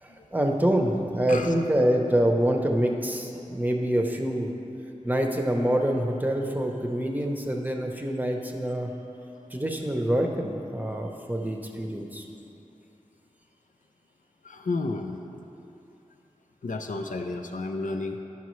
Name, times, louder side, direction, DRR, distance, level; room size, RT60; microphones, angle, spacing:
voice 1, 0.0-4.5 5.0-8.9 9.5-12.2, right 1 dB, 10° right, 1 dB, 0.8 m, -26 dB
voice 2, 14.4-15.2 16.6-18.2, left 3 dB, 75° left, 3 dB, 0.5 m, -31 dB
10.0 x 5.7 x 3.2 m, 2.8 s
wide cardioid pair, 45°, 14 cm